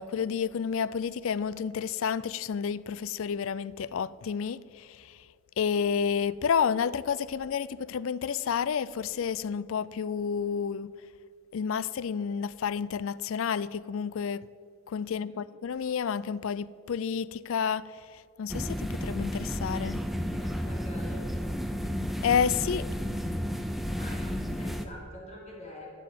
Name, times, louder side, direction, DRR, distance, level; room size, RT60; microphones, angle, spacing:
voice 1, 0.0-4.9 5.6-10.9 11.5-14.5 14.9-17.9 18.4-20.0 22.2-22.9, left 7 dB, 65° left, 0.4 m, -30 dB
voice 2, 15.1-15.4 20.1-21.2 23.9-25.9, left 1 dB, 30° left, 3.1 m, -46 dB
sound 1, 18.5-24.9, equal, ahead, 0.5 m, -32 dB
12.5 x 7.1 x 7.8 m
head